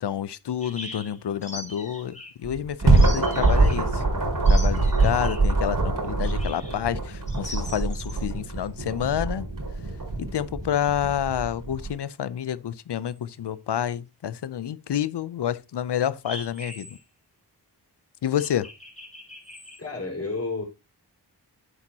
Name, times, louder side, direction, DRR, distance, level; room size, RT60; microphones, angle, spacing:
voice 1, 0.0-4.0 4.5-9.5 10.2-16.9 18.2-18.7, left 10 dB, 75° left, 0.7 m, -29 dB
sound 1, 0.6-2.4 3.0-3.8 4.5-5.5 6.2-6.8 7.3-8.2 13.1-13.2 16.3-17.0 18.4-19.8, left 1 dB, 15° left, 3.1 m, -41 dB
sound 2, 2.4-11.9, right 2 dB, 50° right, 4.7 m, -23 dB
voice 2, 19.8-20.6, left 3 dB, 35° left, 4.6 m, -30 dB
9.9 x 8.1 x 2.9 m
wide cardioid pair, 75°, 41 cm